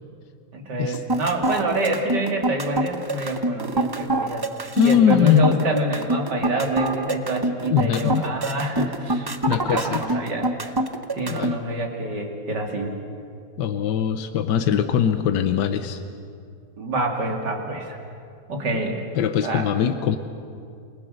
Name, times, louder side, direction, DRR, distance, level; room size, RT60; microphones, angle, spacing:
voice 1, 0.5-4.4 4.8-10.5 11.1-12.9 16.8-18.0 18.5-19.0 19.4-19.6, right 1 dB, 70° right, 2 dB, 3.2 m, -27 dB
sound 1, 0.9-11.5, right 2 dB, 25° right, 0.5 m, -25 dB
voice 2, 4.7-5.6 7.7-8.3 9.5-10.2 11.3-11.6 13.6-16.0 19.1-20.2, left 9 dB, 80° left, 9 dB, 1.5 m, -21 dB
29.5 x 20.0 x 6.5 m, 2.4 s
omnidirectional pair, 1.9 m